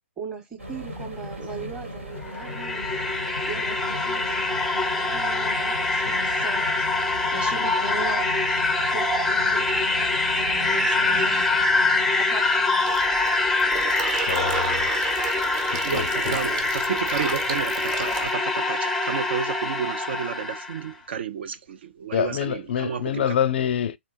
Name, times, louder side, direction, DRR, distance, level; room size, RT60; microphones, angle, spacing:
voice 1, 0.2-3.2 3.5-7.0 7.3-8.7 8.9-11.5 12.2-12.9 13.7-13.9, right 6 dB, 15° right, 1.1 m, -39 dB
sound 1, 0.6-12.9, left 1 dB, 85° right, 1.8 m, -37 dB
sound 2, 2.2-20.8, left 3 dB, 5° left, 0.5 m, -24 dB
Water tap faucet / Sink (filling or washing), 12.9-18.3, right 6 dB, 35° right, 1.1 m, -34 dB
voice 2, 14.3-14.9 15.7-16.3 22.1-24.0, left 9 dB, 55° left, 0.4 m, -26 dB
voice 3, 15.8-23.4, right 7 dB, 55° right, 0.5 m, -31 dB
3.7 x 3.3 x 2.5 m
figure-of-eight pair, 130°, 7 cm